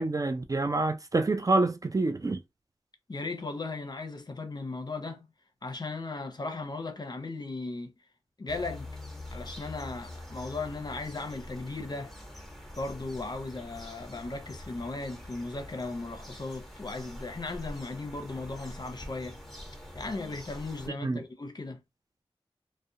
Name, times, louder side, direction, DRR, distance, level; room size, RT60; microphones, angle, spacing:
voice 1, 0.0-2.4 21.0-21.2, right 2 dB, 35° right, 0.4 m, -27 dB
voice 2, 3.1-5.3 5.6-7.9 8.4-8.9 9.3-12.1 12.8-19.4 19.9-21.8, left 3 dB, 40° left, 0.6 m, -37 dB
sound 1, 8.5-20.9, left 1 dB, 5° left, 1.1 m, -45 dB
2.4 x 2.1 x 2.7 m
cardioid pair, 50°, 11 cm